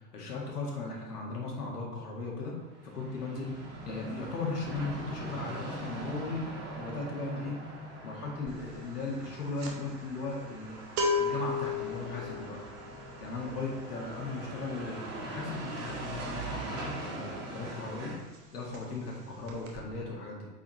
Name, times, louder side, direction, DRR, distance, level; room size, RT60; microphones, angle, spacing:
voice 1, 0.1-2.6 2.8-3.5 3.9-6.4 6.8-7.6 8.0-10.8 11.2-12.6 13.2-18.2 18.5-20.5, left 3 dB, 70° left, -2 dB, 1.9 m, -37 dB
sound 1, 2.6-18.2, right 2 dB, 45° right, 1.9 m, -42 dB
sound 2, 8.5-8.7 9.0-17.6 17.8-18.1 18.3-19.2 19.4-19.8, left 3 dB, 30° right, 1.0 m, -35 dB
8.3 x 4.1 x 3.1 m, 1.1 s
figure-of-eight pair, 95°, 49 cm